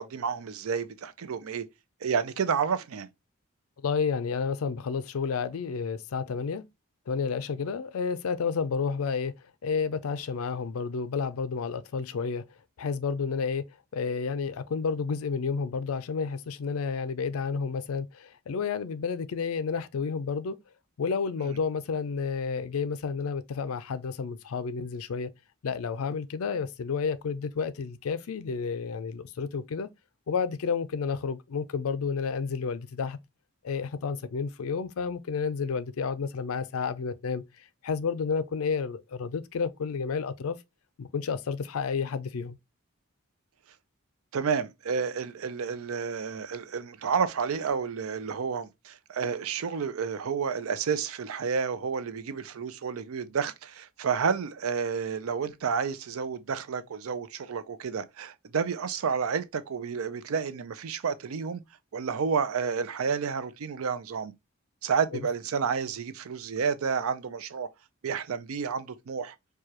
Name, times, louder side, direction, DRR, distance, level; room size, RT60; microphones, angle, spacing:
voice 1, 0.0-1.6 2.0-3.1 21.4-21.6 44.3-61.6 61.9-64.3 64.8-67.7 68.0-69.3, right 6 dB, 85° right, 0.5 m, -30 dB
voice 2, 3.8-6.6 7.1-9.3 9.6-12.4 12.8-13.7 13.9-20.6 21.0-25.3 25.6-29.9 30.3-33.2 33.6-37.4 37.8-40.6 41.0-42.6, left 5 dB, 90° left, 0.4 m, -31 dB
4.7 x 2.3 x 2.8 m
head